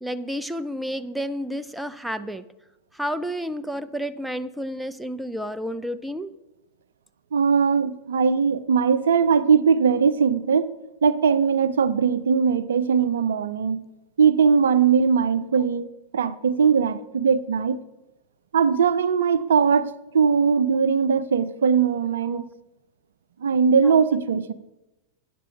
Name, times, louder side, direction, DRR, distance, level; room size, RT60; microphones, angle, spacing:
voice 1, 0.0-2.4 2.9-6.3 22.2-22.5 24.0-24.1, equal, 5° right, 0.5 m, -31 dB
voice 2, 7.3-10.7 11.0-13.8 14.2-17.8 18.5-22.4 23.4-24.5, right 6 dB, 65° right, 0.5 m, -20 dB
13.0 x 9.3 x 5.0 m
figure-of-eight pair, 90°, 0 cm